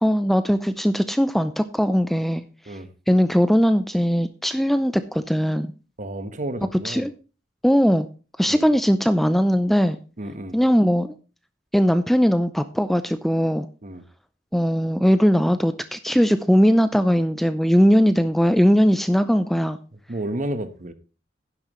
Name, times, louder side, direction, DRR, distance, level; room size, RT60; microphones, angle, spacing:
voice 1, 0.0-2.4 3.1-5.7 6.8-7.1 7.6-8.1 8.4-10.0 10.5-11.1 11.7-13.7 14.5-19.8, equal, ahead, 0.5 m, -19 dB
voice 2, 6.0-7.1 8.5-8.7 10.2-10.6 13.8-14.0 20.1-20.9, right 1 dB, 45° right, 1.2 m, -31 dB
11.0 x 10.5 x 3.1 m
head